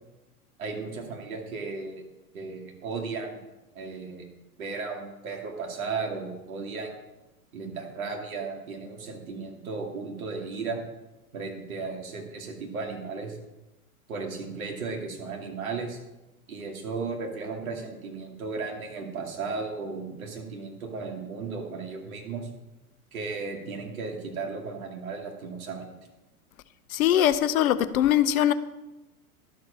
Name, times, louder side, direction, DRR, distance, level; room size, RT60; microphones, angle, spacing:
voice 1, 0.6-2.1 2.3-3.4 3.7-4.3 4.6-6.9 7.5-10.8 11.3-13.4 14.1-16.0 16.5-22.5 23.1-26.0, right 4 dB, 65° right, 2.6 m, -35 dB
voice 2, 26.9-28.5, left 11 dB, 65° left, 0.7 m, -22 dB
12.0 x 7.0 x 5.5 m
figure-of-eight pair, 100°, 45 cm